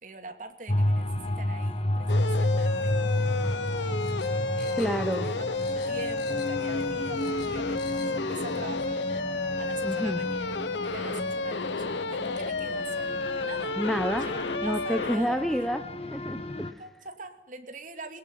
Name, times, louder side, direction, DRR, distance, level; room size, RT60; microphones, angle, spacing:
voice 1, 0.0-4.0 4.6-9.0 9.6-13.8 14.2-15.7 16.8-18.2, right 3 dB, 45° right, 7 dB, 2.5 m, -44 dB
sound 1, 0.7-16.7, left 1 dB, 35° left, 1.6 m, -32 dB
sound 2, 2.1-15.2, left 3 dB, 85° left, 1.1 m, -31 dB
sound 3, 4.0-5.3 5.5-6.7 6.9-8.1 8.5-8.6, left 8 dB, 60° left, 4.7 m, -49 dB
voice 2, 4.8-5.3 9.8-10.2 13.7-14.3 14.6-15.8 16.1-16.7, equal, ahead, 10 dB, 0.9 m, -29 dB
22.0 x 19.0 x 9.4 m, 0.75 s
head